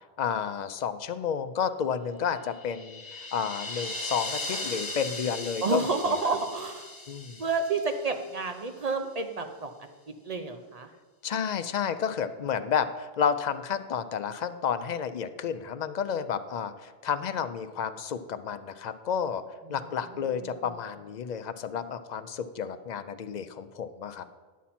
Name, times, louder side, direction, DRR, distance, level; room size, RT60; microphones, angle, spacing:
voice 1, 0.2-6.2 7.1-7.4 11.2-19.4 19.7-24.2, left 7 dB, 55° left, 11 dB, 0.5 m, -31 dB
sound 1, 2.4-8.7, left 2 dB, 20° left, 0.9 m, -38 dB
voice 2, 5.6-6.9 7.4-9.7 10.1-10.9 19.7-19.8 20.1-20.5, right 4 dB, 45° right, 6 dB, 0.6 m, -30 dB
10.0 x 7.3 x 4.2 m, 1.4 s
omnidirectional pair, 1.0 m